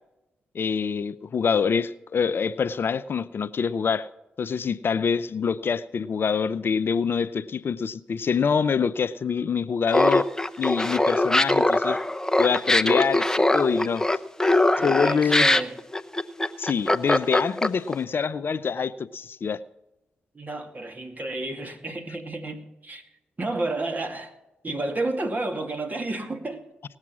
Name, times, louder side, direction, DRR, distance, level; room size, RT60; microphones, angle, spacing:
voice 1, 0.5-4.1 4.4-10.2 10.6-12.0 12.4-14.0 14.8-15.5 16.6-19.6, left 6 dB, 60° left, 16 dB, 0.5 m, -25 dB
Laughter, 9.9-17.9, left 1 dB, 15° left, 0.8 m, -21 dB
voice 2, 14.8-15.7 20.3-23.0 23.4-24.3 24.6-26.6, right 2 dB, 40° right, 4 dB, 2.4 m, -31 dB
18.5 x 7.4 x 6.1 m, 0.93 s
supercardioid pair, 45°, 4 cm